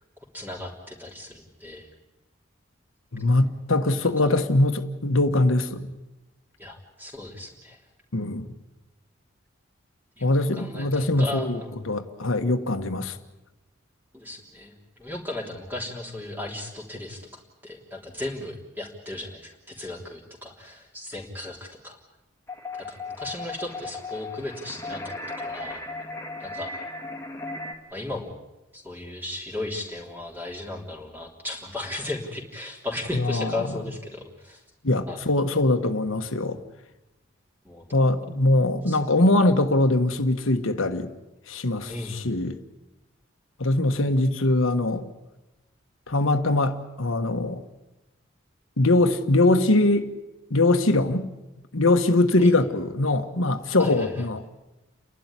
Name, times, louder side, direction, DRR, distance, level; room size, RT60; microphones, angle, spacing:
voice 1, 0.3-1.9 4.2-4.3 6.6-7.8 10.2-11.9 14.1-22.0 22.7-25.8 26.4-26.7 27.9-28.3 28.7-34.6 35.1-35.2 37.6-37.8 38.9-39.0 41.9-42.2 52.4-52.5 53.8-54.3, left 2 dB, 10° right, 3.4 m, -36 dB
voice 2, 3.1-5.9 8.1-8.5 10.2-11.6 11.9-13.2 33.1-33.7 34.8-36.6 37.9-41.1 41.5-42.6 43.6-45.0 46.1-47.6 48.8-50.1 50.5-51.3 51.7-54.5, left 2 dB, 85° left, 1.4 m, -22 dB
sound 1, 22.5-27.7, left 2 dB, 10° left, 2.3 m, -36 dB
30.0 x 12.0 x 9.8 m
head